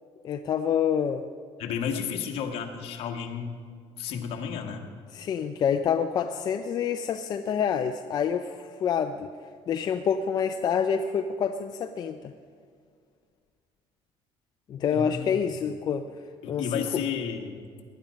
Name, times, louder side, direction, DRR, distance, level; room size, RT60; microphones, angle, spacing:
voice 1, 0.2-1.2 5.1-9.3 9.7-12.3 14.7-16.1 16.5-16.8, left 7 dB, 35° left, 7 dB, 0.5 m, -27 dB
voice 2, 1.6-3.6 4.0-4.9 14.9-15.3 16.4-17.6, left 7 dB, 60° left, 3 dB, 1.6 m, -32 dB
18.5 x 11.0 x 5.2 m, 2.1 s
cardioid pair, 160°, 11 cm